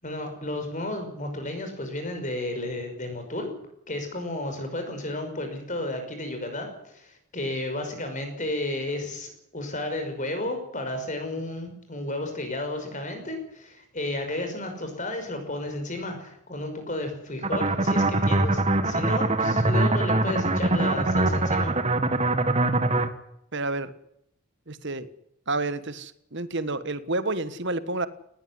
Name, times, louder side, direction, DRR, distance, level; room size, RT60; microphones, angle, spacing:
voice 1, 0.0-3.5 3.9-21.8, left 1 dB, 35° left, 6 dB, 5.6 m, -32 dB
sound 1, 17.4-23.1, right 2 dB, 30° right, 1.7 m, -23 dB
voice 2, 23.5-23.9 24.7-25.1 25.5-28.1, right 2 dB, 50° right, 14 dB, 1.5 m, -30 dB
19.5 x 17.0 x 9.7 m, 0.76 s
head